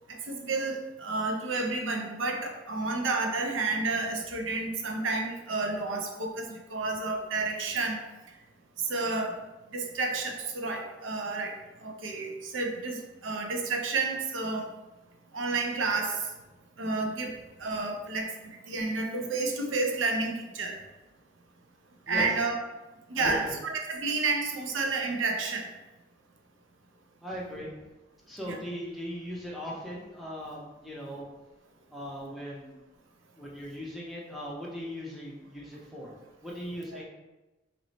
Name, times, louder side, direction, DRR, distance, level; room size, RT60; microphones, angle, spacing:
voice 1, 0.1-8.0 8.9-9.4 9.7-11.5 11.8-13.0 13.2-14.7 15.3-16.2 16.8-17.3 17.6-18.3 18.7-20.8 22.1-22.6 23.1-25.7 28.5-28.6 36.9-37.0, right 3 dB, 85° right, 2 dB, 0.6 m, -30 dB
voice 2, 23.1-23.5 27.2-27.7 28.3-31.3 31.9-32.8 33.4-36.1 36.4-37.0, equal, ahead, -5 dB, 0.6 m, -38 dB
3.0 x 3.0 x 4.1 m, 1.1 s
head